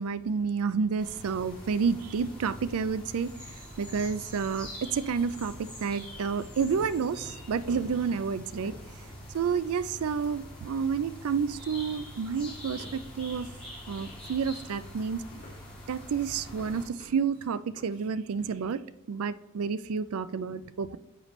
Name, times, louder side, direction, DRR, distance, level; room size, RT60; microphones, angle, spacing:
voice 1, 0.0-3.3 3.8-8.7 9.3-13.5 13.9-15.2 15.9-18.8 19.1-21.0, right 6 dB, 75° right, 16 dB, 0.4 m, -30 dB
sound 1, 1.0-16.9, left 1 dB, 5° left, 2.9 m, -45 dB
sound 2, 6.8-18.7, left 1 dB, 45° left, 3.4 m, -53 dB
9.9 x 6.8 x 3.1 m, 0.93 s
head